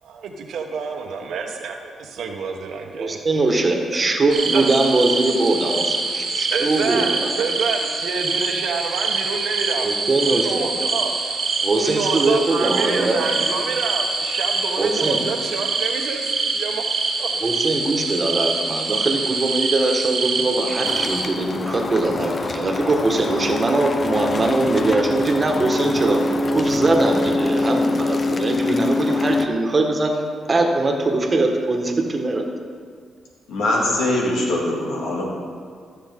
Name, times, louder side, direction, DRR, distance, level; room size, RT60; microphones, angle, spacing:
voice 1, 0.0-3.2 3.9-4.0 4.5-4.7 6.5-9.9 10.2-11.1 11.8-16.8 17.2-17.4, right 5 dB, 75° right, 4 dB, 1.1 m, -28 dB
voice 2, 3.0-7.3 9.8-10.7 11.6-13.2 14.8-15.3 17.4-26.2 26.5-30.1 30.5-32.5, right 2 dB, 35° right, 2 dB, 1.5 m, -21 dB
sound 1, 4.3-21.2, right 3 dB, 55° right, 1.4 m, -25 dB
sound 2, 20.8-29.5, left 2 dB, 40° left, 0.6 m, -24 dB
voice 3, 33.5-35.3, left 1 dB, 85° left, -2 dB, 2.2 m, -22 dB
13.5 x 7.0 x 3.7 m, 2.1 s
cardioid pair, 70°, 0 cm